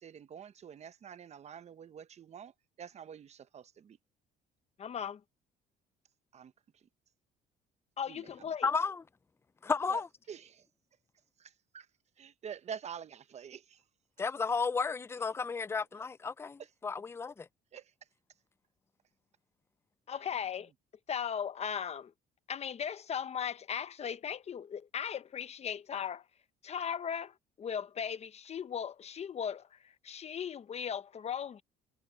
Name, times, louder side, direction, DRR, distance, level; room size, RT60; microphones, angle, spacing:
voice 1, 0.0-2.5 2.8-4.0 6.3-6.9 8.1-8.5 9.9-10.0 10.3-10.7 11.4-11.9 12.2-13.8 16.6-16.7 17.7-17.9 20.2-20.3, right 7 dB, 40° right, 1.0 m, -47 dB
voice 2, 4.8-5.2 8.0-8.7 20.1-20.7 21.1-22.1 22.5-26.2 26.6-29.8 30.0-31.6, left 8 dB, 40° left, 0.9 m, -37 dB
voice 3, 8.6-9.0 9.6-10.1 14.2-17.5, left 5 dB, 15° left, 0.4 m, -33 dB
cardioid pair, 110°, 17 cm